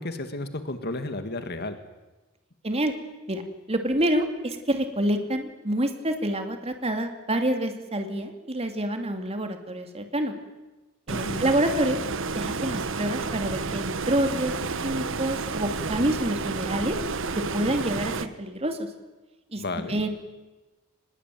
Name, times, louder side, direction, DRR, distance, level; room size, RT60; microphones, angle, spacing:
voice 1, 0.0-1.8 11.1-11.5 19.6-20.0, left 2 dB, 50° left, 9 dB, 2.0 m, -33 dB
voice 2, 3.7-10.3 11.1-12.0 12.3-17.0 17.4-18.9 19.5-19.6 19.9-20.1, right 1 dB, 30° right, 6 dB, 2.7 m, -27 dB
Stream, 11.1-18.3, right 4 dB, 65° right, 1.2 m, -31 dB
24.5 x 21.0 x 9.3 m, 1.1 s
head